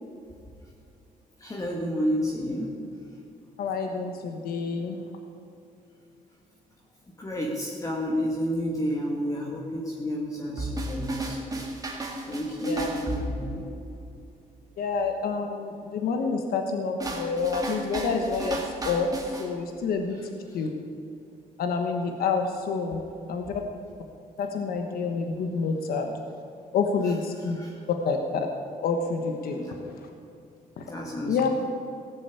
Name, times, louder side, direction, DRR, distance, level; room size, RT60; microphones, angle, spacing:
voice 1, 1.4-2.7 7.2-11.6 12.3-13.7 27.6-27.8 29.6-29.7 30.9-31.4, equal, 20° left, -3 dB, 1.9 m, -30 dB
voice 2, 3.6-5.0 12.7-12.9 14.8-18.6 18.8-19.1 19.4-20.2 20.5-20.7 21.6-23.0 23.3-23.6 24.4-26.1 26.7-27.6 27.9-28.5 28.8-29.6 30.0-30.1 30.8-30.9 31.3-31.5, left 5 dB, 85° left, 4 dB, 1.3 m, -28 dB
sound 1, 10.6-14.0 17.0-19.5, right 2 dB, 25° right, 2.0 m, -34 dB
17.0 x 7.1 x 8.4 m, 2.6 s
cardioid pair, 130°, 15 cm